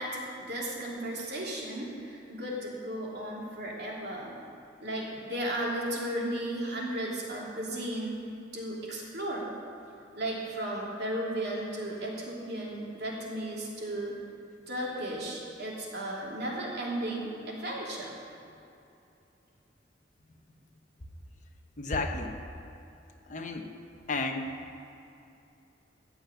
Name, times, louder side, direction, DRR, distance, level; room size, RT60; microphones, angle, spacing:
voice 1, 0.0-4.3 4.8-8.2 8.5-9.5 10.1-14.2 14.7-18.1, right 1 dB, 60° right, -4 dB, 2.9 m, -35 dB
voice 2, 21.8-22.4 23.3-23.7 24.1-24.6, left 2 dB, 45° left, 3 dB, 1.1 m, -32 dB
15.0 x 5.4 x 9.5 m, 2.7 s
head